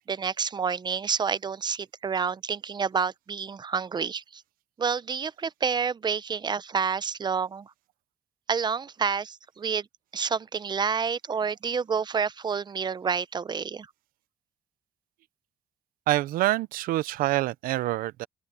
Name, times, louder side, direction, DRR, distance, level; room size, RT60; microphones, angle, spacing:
voice 1, 0.0-4.4 4.8-7.7 8.5-9.9 10.1-13.9, right 6 dB, 30° right, 0.6 m, -29 dB
voice 2, 16.1-18.3, right 16 dB, 90° right, 0.6 m, -26 dB
open air
cardioid pair, 100°, 14 cm